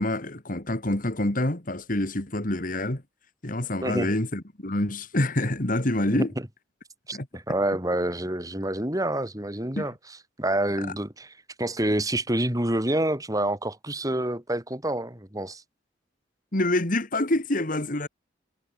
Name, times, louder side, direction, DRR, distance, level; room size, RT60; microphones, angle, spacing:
voice 1, 0.0-3.0 3.4-6.3 7.1-7.3 9.8-9.9 16.5-18.1, left 1 dB, 50° left, 2.4 m, -26 dB
voice 2, 3.8-4.1 6.1-6.3 7.1-9.9 10.4-11.3 11.6-15.6, right 1 dB, 20° right, 3.7 m, -27 dB
head